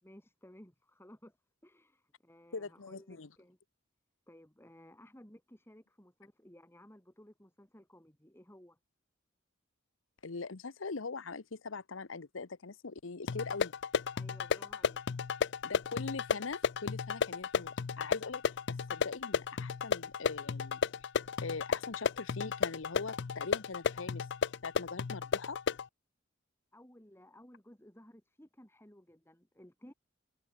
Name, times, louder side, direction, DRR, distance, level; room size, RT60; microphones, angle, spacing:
voice 1, 0.0-1.4 1.6-3.6 4.3-8.8 14.1-15.0 26.7-29.9, equal, 10° left, 4.5 m, -57 dB
voice 2, 2.5-3.3 10.2-13.7 15.6-21.1 21.4-24.3 24.6-25.6, left 4 dB, 85° left, 1.0 m, -42 dB
sound 1, 13.3-25.9, left 6 dB, 60° left, 0.5 m, -34 dB
head